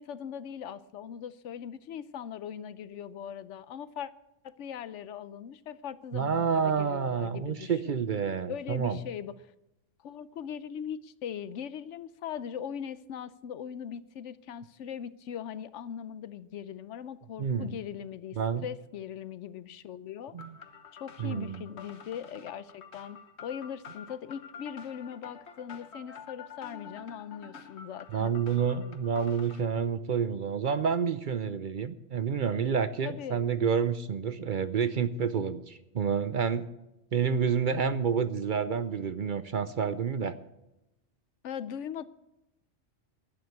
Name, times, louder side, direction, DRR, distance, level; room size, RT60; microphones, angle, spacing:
voice 1, 0.0-4.1 4.4-7.9 8.5-9.4 10.0-20.4 21.0-28.4 33.0-33.4 41.4-42.0, left 8 dB, 80° left, 16 dB, 1.0 m, -40 dB
voice 2, 6.1-9.0 17.4-17.8 18.4-18.6 20.3-20.6 21.2-21.7 28.1-36.7 37.1-40.3, right 6 dB, 50° right, 13 dB, 0.7 m, -29 dB
sound 1, 20.4-29.6, left 6 dB, 65° left, 1.4 m, -48 dB
11.5 x 9.4 x 8.1 m, 0.90 s
omnidirectional pair, 1.2 m